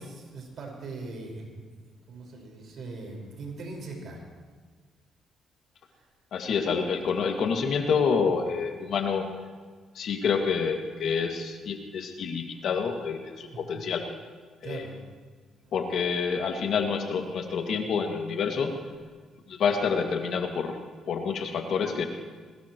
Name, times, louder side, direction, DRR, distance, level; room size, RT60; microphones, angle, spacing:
voice 1, 0.0-4.2 13.5-13.8 14.6-15.0 15.6-15.7, right 3 dB, 65° right, 0 dB, 5.1 m, -41 dB
voice 2, 6.3-9.3 9.9-14.0 14.6-14.9 15.7-18.7 19.5-20.8 21.1-22.0, left 6 dB, 70° left, 3 dB, 2.1 m, -28 dB
22.0 x 20.0 x 3.1 m, 1.5 s
cardioid pair, 90°, 0 cm